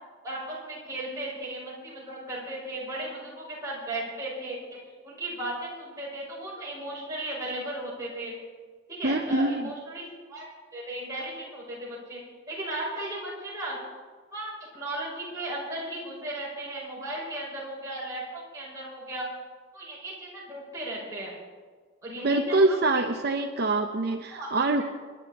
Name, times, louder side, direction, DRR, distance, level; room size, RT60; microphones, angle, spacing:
voice 1, 0.2-4.8 5.0-8.3 8.9-10.5 10.7-12.2 12.5-13.8 14.3-19.3 19.7-21.3 22.0-23.0 24.3-24.8, right 1 dB, 15° right, -6 dB, 5.6 m, -36 dB
voice 2, 9.0-9.7 22.2-24.8, right 2 dB, 55° right, 5 dB, 0.7 m, -25 dB
25.0 x 11.0 x 4.2 m, 1.5 s
head